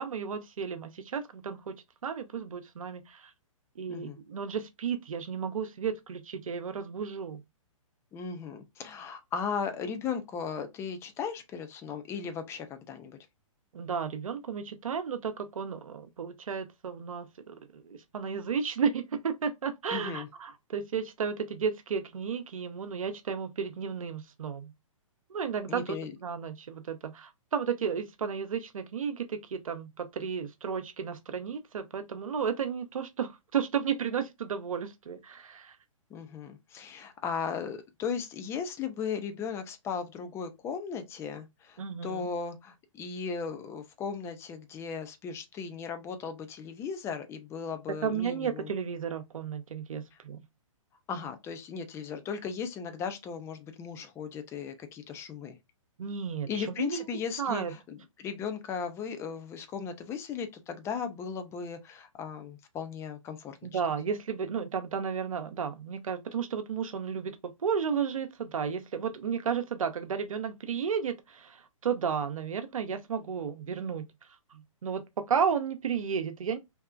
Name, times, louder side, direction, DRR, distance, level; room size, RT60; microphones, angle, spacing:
voice 1, 0.0-1.8 2.0-3.3 3.8-7.4 13.7-24.7 25.3-26.0 26.2-35.8 41.8-42.3 47.9-50.4 56.0-57.0 57.4-57.7 63.6-74.1 74.5-76.6, right 6 dB, 80° right, 0.7 m, -33 dB
voice 2, 8.1-13.2 19.9-20.3 25.7-26.2 36.1-48.7 51.1-55.6 56.5-63.8, left 6 dB, 15° left, 0.5 m, -37 dB
3.2 x 2.8 x 2.3 m
hypercardioid pair, 135°, 17 cm